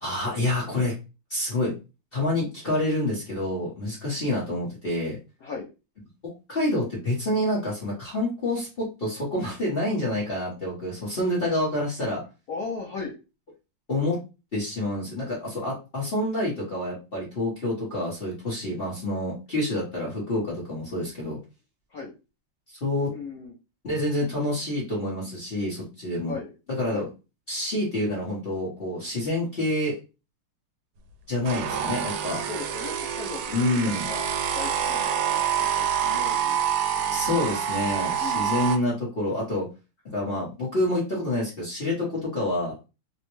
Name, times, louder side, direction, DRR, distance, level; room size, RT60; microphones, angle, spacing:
voice 1, 0.0-0.9 1.3-1.7 2.1-5.2 6.2-12.2 13.9-14.2 14.5-21.4 22.8-23.1 23.8-26.3 26.8-27.1 27.5-29.9 31.3-32.4 33.5-34.1 37.1-39.7 40.1-42.7, left 1 dB, 40° left, -6 dB, 0.8 m, -27 dB
voice 2, 12.5-13.1 21.9-22.1 23.1-23.5 26.3-26.5 26.9-27.1 31.7-31.8 32.4-34.2 34.5-36.6 37.0-37.6 38.2-38.5, left 4 dB, 80° left, -2 dB, 0.8 m, -37 dB
sound 1, 31.5-38.8, right 8 dB, 85° right, 1.5 m, -27 dB
3.7 x 2.1 x 3.0 m, 0.29 s
omnidirectional pair, 2.4 m